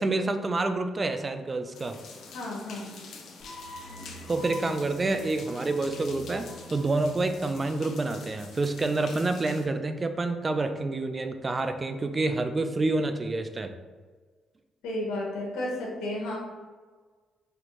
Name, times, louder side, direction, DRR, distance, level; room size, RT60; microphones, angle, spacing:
voice 1, 0.0-2.0 4.3-13.7, right 2 dB, 30° right, 8 dB, 0.3 m, -28 dB
sound 1, 1.7-9.7, left 4 dB, 70° left, 0.6 m, -46 dB
voice 2, 2.3-3.0 14.8-16.4, left 1 dB, 85° left, -3 dB, 1.0 m, -32 dB
sound 2, 3.4-8.6, equal, 55° left, 1.1 m, -46 dB
4.4 x 2.6 x 2.9 m, 1.4 s
cardioid pair, 90°, 0 cm